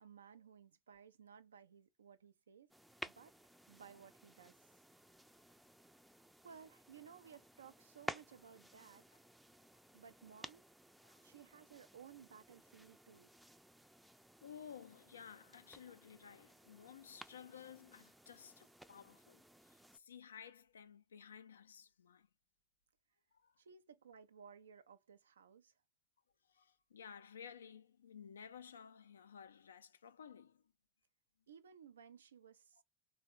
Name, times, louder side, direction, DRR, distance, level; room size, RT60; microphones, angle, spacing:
voice 1, 0.0-2.7 3.0-3.3 3.7-4.7 6.4-9.2 9.9-10.6 11.2-13.3 23.6-25.7 31.5-32.8, right 7 dB, 85° right, 0.3 m, -59 dB
sound 1, 2.7-20.0, right 1 dB, 5° right, 0.4 m, -55 dB
voice 2, 14.4-22.3 23.3-23.6 26.4-30.7, left 7 dB, 85° left, 0.3 m, -55 dB
3.5 x 2.1 x 2.5 m
hypercardioid pair, 75°, 0 cm